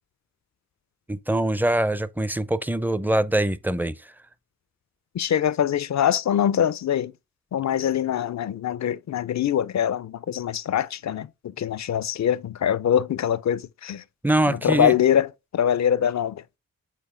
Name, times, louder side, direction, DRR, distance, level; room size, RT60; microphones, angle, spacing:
voice 1, 1.1-4.0 14.2-14.9, right 1 dB, 5° right, 0.5 m, -23 dB
voice 2, 5.1-7.1 7.5-14.0 14.5-16.4, left 9 dB, 55° left, 0.5 m, -23 dB
7.5 x 4.1 x 3.7 m
cardioid pair, 60°, 34 cm